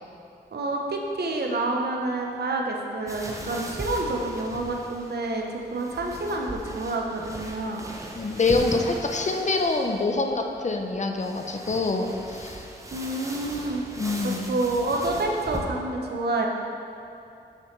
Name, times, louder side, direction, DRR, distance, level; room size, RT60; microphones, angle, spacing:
voice 1, 0.5-7.8 12.9-13.8 14.2-16.5, right 2 dB, 65° right, 1 dB, 0.8 m, -28 dB
sound 1, 3.1-15.6, right 1 dB, 15° right, 0.9 m, -39 dB
voice 2, 8.1-12.6 14.0-14.4, left 3 dB, 40° left, 3 dB, 0.6 m, -25 dB
6.6 x 6.1 x 3.1 m, 2.6 s
cardioid pair, 50°, 18 cm